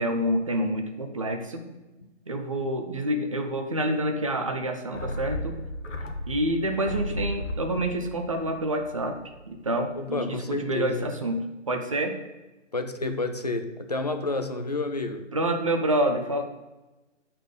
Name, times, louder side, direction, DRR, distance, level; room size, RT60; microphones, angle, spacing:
voice 1, 0.0-1.6 2.3-5.6 6.3-9.2 9.5-12.2 15.3-16.4, right 1 dB, 30° right, 0.5 m, -27 dB
sound 1, 4.9-9.5 9.8-9.9, equal, 85° left, 1.1 m, -35 dB
voice 2, 10.0-11.1 12.7-15.3, left 2 dB, 35° left, 0.4 m, -30 dB
8.0 x 4.3 x 5.0 m
hypercardioid pair, 160°, 37 cm